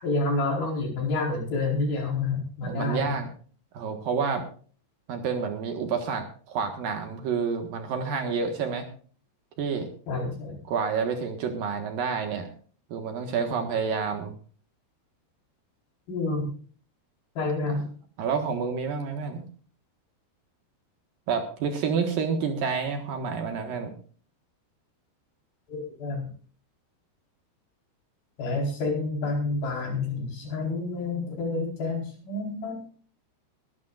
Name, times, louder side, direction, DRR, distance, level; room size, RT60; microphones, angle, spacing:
voice 1, 0.0-3.1 10.1-10.6 16.1-16.5 17.4-17.9 25.7-26.3 28.4-32.9, left 3 dB, 60° left, 0 dB, 6.1 m, -29 dB
voice 2, 2.6-3.3 3.7-4.4 5.1-8.9 9.6-9.9 10.7-12.5 12.9-14.3 18.2-19.4 21.3-23.9, right 5 dB, 65° right, 5 dB, 3.0 m, -29 dB
22.0 x 12.5 x 2.5 m, 0.42 s
omnidirectional pair, 4.8 m